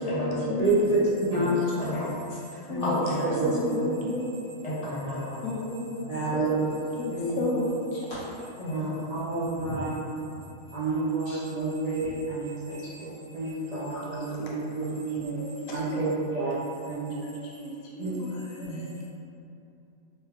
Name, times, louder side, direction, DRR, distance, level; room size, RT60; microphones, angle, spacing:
voice 1, 0.0-1.1 1.4-1.6 2.7-3.0 3.4-4.3 5.4-6.5 7.0-8.1 13.9-14.2 15.2-16.3 17.2-18.8, left 2 dB, 80° left, -3 dB, 1.0 m, -33 dB
voice 2, 0.6-1.6 2.7-3.9 6.1-6.7 7.1-7.4 8.7-8.8 9.1-10.1 10.7-15.3 15.7-16.6 16.8-17.2 18.0-18.1 18.6-18.8, right 2 dB, 70° right, -10 dB, 0.3 m, -29 dB
voice 3, 1.8-3.6 4.6-5.4 8.6-9.1 11.3-11.4, equal, 35° left, -9 dB, 0.7 m, -32 dB
sound 1, 5.3-5.5 6.2-7.1 7.4-8.2 8.6-10.5 11.0-11.2 11.9-12.1, right 1 dB, 55° left, 1.3 m, -43 dB
3.1 x 2.3 x 3.2 m, 2.7 s
omnidirectional pair, 1.5 m